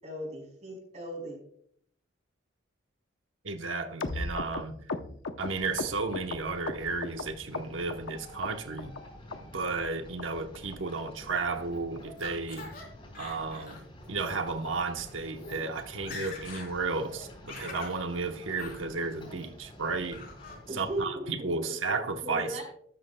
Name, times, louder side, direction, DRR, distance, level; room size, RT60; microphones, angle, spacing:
voice 1, 0.0-1.4 20.7-22.6, right 1 dB, 35° right, 4.8 m, -38 dB
voice 2, 3.4-4.8 5.4-8.9 9.5-12.7 13.2-20.2 20.7-22.6, right 4 dB, 85° right, 0.9 m, -33 dB
sound 1, 4.0-7.2 7.5-8.1 8.4-9.0 9.3-9.4 9.7-9.9 10.2-10.3 10.5-10.8 11.1-11.2 11.4-11.6 12.0-12.1 12.3-12.5 12.8-12.9 13.2-13.4 13.7-13.8, left 3 dB, 80° left, 0.8 m, -36 dB
sound 2, 5.4-21.0, left 1 dB, 25° left, 4.1 m, -50 dB
Laughter, 11.3-12.8 13.1-13.8 14.2-14.4 15.0-15.1 15.3-15.6 15.9-16.7 17.0-18.0 18.6-18.8 19.2-19.7 20.1-20.6, left 3 dB, 50° left, 3.4 m, -44 dB
13.0 x 12.5 x 2.2 m
head